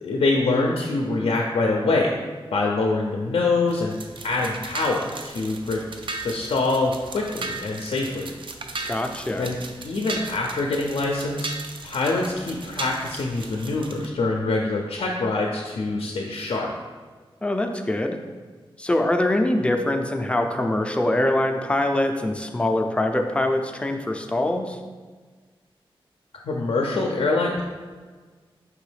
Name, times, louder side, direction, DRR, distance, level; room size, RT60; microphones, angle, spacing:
voice 1, 0.0-2.1 2.5-3.9 4.2-5.8 6.2-8.3 9.4-9.6 9.8-11.5 11.8-16.7 26.4-27.6, left 3 dB, 75° left, 0 dB, 0.4 m, -24 dB
sound 1, 3.7-14.1, right 3 dB, 60° right, 0.4 m, -36 dB
voice 2, 8.8-9.5 17.4-18.2 18.8-24.8, left 1 dB, 10° left, 4 dB, 0.4 m, -23 dB
4.7 x 3.0 x 3.2 m, 1.4 s
wide cardioid pair, 80°, 10 cm